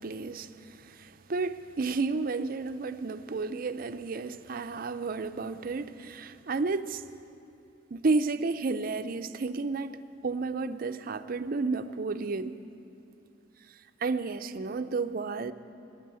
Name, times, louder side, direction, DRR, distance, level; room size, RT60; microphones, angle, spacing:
voice 1, 0.0-7.0 7.9-12.5 14.0-15.5, right 3 dB, 50° right, 10 dB, 0.5 m, -32 dB
15.0 x 10.0 x 7.6 m, 2.7 s
head